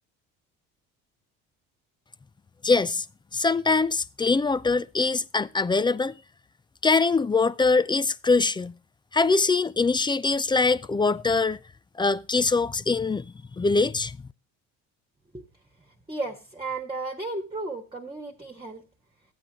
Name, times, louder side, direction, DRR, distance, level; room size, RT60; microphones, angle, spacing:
voice 1, 2.6-3.1 3.3-6.1 6.8-8.7 9.1-11.6 12.0-14.2, left 4 dB, 15° left, 0.4 m, -23 dB
voice 2, 16.1-18.8, right 2 dB, 15° right, 1.5 m, -34 dB
13.5 x 8.6 x 2.8 m
hypercardioid pair, 70°, 34 cm